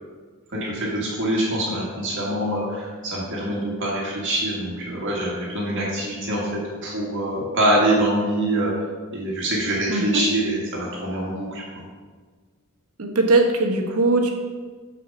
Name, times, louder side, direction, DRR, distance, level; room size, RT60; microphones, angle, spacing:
voice 1, 0.5-8.7 9.1-11.6, right 1 dB, 55° right, -4 dB, 1.9 m, -24 dB
voice 2, 9.9-10.2 13.0-14.3, right 2 dB, 80° right, 3 dB, 1.2 m, -20 dB
6.9 x 5.0 x 6.8 m, 1.5 s
head